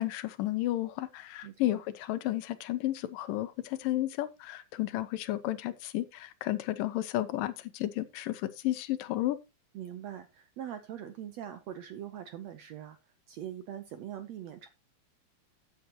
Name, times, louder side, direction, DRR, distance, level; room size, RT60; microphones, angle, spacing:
voice 1, 0.0-9.4, left 15 dB, 75° left, 2.4 m, -32 dB
voice 2, 1.4-1.8 9.7-13.0 13.3-14.7, right 10 dB, 75° right, 1.6 m, -42 dB
14.0 x 8.3 x 2.9 m
omnidirectional pair, 4.1 m